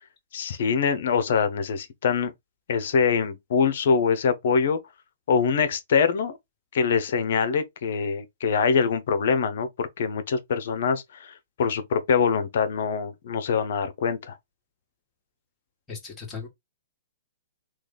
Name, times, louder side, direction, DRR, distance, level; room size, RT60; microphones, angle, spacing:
voice 1, 0.3-2.3 2.7-4.8 5.3-6.4 6.7-11.3 11.6-14.4, left 6 dB, 65° left, 0.8 m, -24 dB
voice 2, 15.9-16.5, left 5 dB, 20° left, 1.7 m, -37 dB
3.2 x 2.4 x 3.8 m
hypercardioid pair, 130°, 0 cm